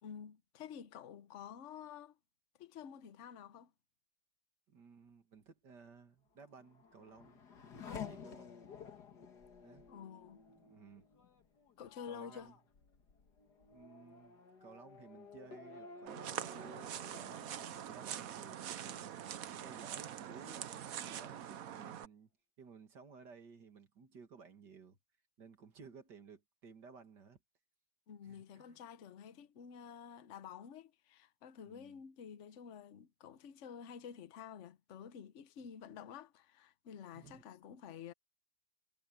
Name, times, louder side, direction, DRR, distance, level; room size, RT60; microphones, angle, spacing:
voice 1, 0.0-2.2 2.6-3.7 9.9-10.4 11.8-12.5 28.1-38.1, left 8 dB, 50° left, 1.1 m, -50 dB
voice 2, 4.7-7.4 8.0-8.6 9.4-9.9 10.5-11.1 12.1-12.6 13.7-17.5 17.9-19.0 19.6-20.7 21.0-22.3 22.6-25.0 25.4-27.4 28.2-28.8 31.7-32.0 37.1-37.4, right 5 dB, 80° right, 2.7 m, -57 dB
Race car auto racing / Accelerating revving vroom, 6.4-19.7 20.1-20.8, left 6 dB, 70° left, 2.3 m, -53 dB
sound 1, 16.1-22.1, right 10 dB, 60° right, 1.2 m, -44 dB
omnidirectional pair, 1.8 m